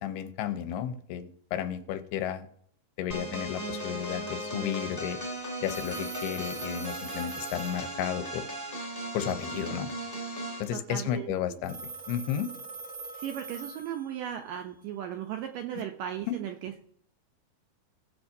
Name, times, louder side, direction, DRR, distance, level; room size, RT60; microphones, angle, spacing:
voice 1, 0.0-2.5 3.0-5.2 5.6-8.5 9.1-9.9 10.6-11.8 12.1-12.5 16.3-16.4, left 10 dB, 85° left, 9 dB, 2.7 m, -33 dB
sound 1, 3.1-10.7, right 1 dB, 10° left, 1.1 m, -37 dB
Telephone, 5.6-8.5 11.6-14.5, right 3 dB, 35° right, 1.0 m, -43 dB
voice 2, 10.7-11.3 13.1-16.8, right 10 dB, 80° right, 5 dB, 2.0 m, -36 dB
17.5 x 7.1 x 2.7 m, 0.64 s
omnidirectional pair, 4.6 m